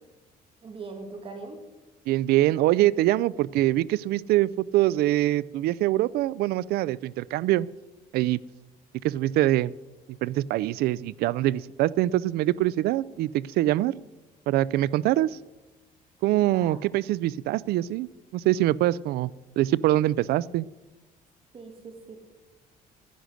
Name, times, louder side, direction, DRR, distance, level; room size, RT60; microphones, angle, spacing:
voice 1, 0.6-1.6 16.4-16.8 21.5-22.2, right 3 dB, 35° right, 4 dB, 2.0 m, -41 dB
voice 2, 2.1-7.7 8.1-8.4 9.0-9.7 10.2-14.0 14.5-15.4 16.2-19.3 19.6-20.7, right 15 dB, 90° right, 22 dB, 0.4 m, -24 dB
11.5 x 10.0 x 6.4 m, 1.1 s
cardioid pair, 150°, 16 cm